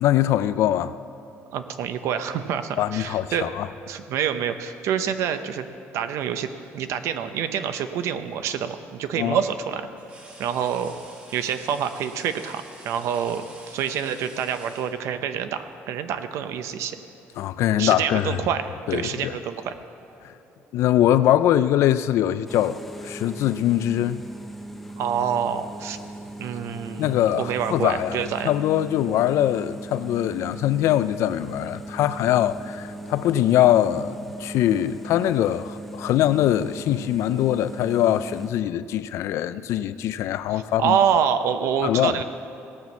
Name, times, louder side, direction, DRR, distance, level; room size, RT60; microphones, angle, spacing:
voice 1, 0.0-0.9 2.8-3.6 9.2-9.4 17.4-18.4 18.9-19.3 20.7-24.2 27.0-41.0 41.8-42.2, left 12 dB, 65° left, 0.4 m, -22 dB
voice 2, 1.5-3.5 3.9-5.6 5.9-9.9 10.4-10.9 11.3-17.0 17.8-19.8 25.0-26.0 26.4-28.5 40.5-42.2, right 8 dB, 65° right, 0.7 m, -27 dB
sound 1, 10.0-15.4 16.6-16.8 17.2-18.0 18.3-18.6 19.5-22.1, right 2 dB, 25° right, 1.4 m, -50 dB
sound 2, 22.5-38.5, right 1 dB, ahead, 0.6 m, -39 dB
17.5 x 6.2 x 7.0 m
cardioid pair, 180°, 5 cm